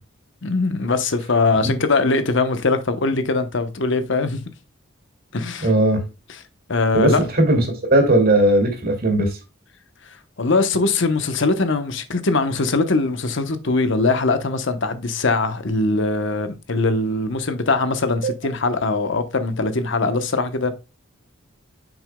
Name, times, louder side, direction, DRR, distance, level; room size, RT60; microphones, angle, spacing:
voice 1, 0.4-4.4 5.3-5.7 6.7-7.2 10.4-20.7, left 3 dB, 65° left, 1.0 m, -21 dB
voice 2, 5.6-6.0 6.9-9.4 18.2-18.3, right 1 dB, 50° right, 2.5 m, -17 dB
8.9 x 6.2 x 2.2 m
head